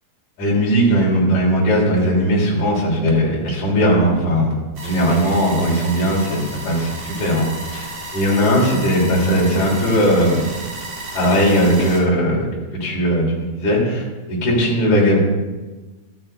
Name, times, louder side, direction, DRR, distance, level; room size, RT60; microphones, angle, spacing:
voice 1, 0.4-4.6 4.8-7.5 7.7-7.8 8.1-10.4 11.1-12.5 12.7-15.2, equal, 40° left, -3 dB, 4.0 m, -18 dB
sound 1, 4.7-12.0, right 1 dB, 50° right, 3.0 m, -33 dB
12.5 x 10.0 x 4.5 m, 1.2 s
omnidirectional pair, 5.7 m